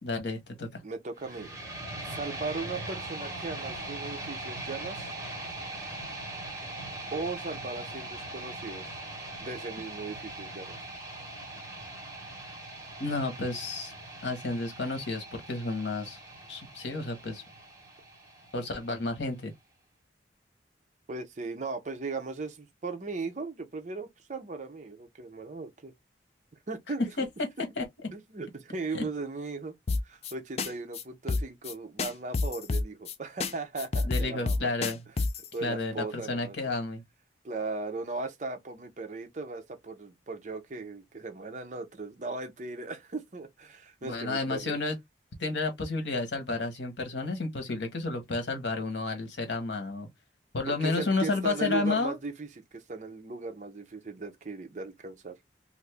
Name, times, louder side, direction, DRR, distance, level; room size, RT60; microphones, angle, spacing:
voice 1, 0.0-0.8 13.0-13.9 14.2-16.2 16.5-17.4 18.5-19.5 27.2-27.3 27.8-27.9 28.9-29.0 34.1-35.0 35.6-37.0 44.0-45.0 45.4-50.1 50.5-52.2, left 3 dB, 90° left, 1.1 m, -31 dB
voice 2, 0.8-1.5 2.0-5.1 7.1-9.0 9.4-10.8 21.1-25.9 26.7-27.0 28.1-29.7 30.0-34.7 35.5-36.6 37.4-44.8 50.7-55.3, right 3 dB, 45° right, 0.6 m, -37 dB
sound 1, 1.2-19.2, right 2 dB, 20° right, 1.4 m, -41 dB
sound 2, 29.9-30.3 30.6-30.7 30.9-31.0 31.3-31.7 32.0-33.1 33.4-33.5 33.8-35.5, left 3 dB, 35° left, 0.4 m, -28 dB
2.5 x 2.5 x 3.3 m
head